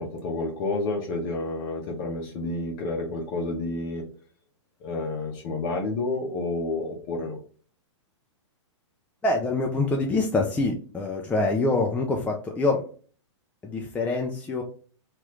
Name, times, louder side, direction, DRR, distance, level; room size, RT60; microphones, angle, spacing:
voice 1, 0.0-4.0 4.8-7.4, left 2 dB, 45° left, 1 dB, 0.8 m, -30 dB
voice 2, 9.2-12.8 13.6-14.6, left 2 dB, 10° left, 1 dB, 0.4 m, -25 dB
2.9 x 2.4 x 3.1 m, 0.41 s
hypercardioid pair, 120°, 16 cm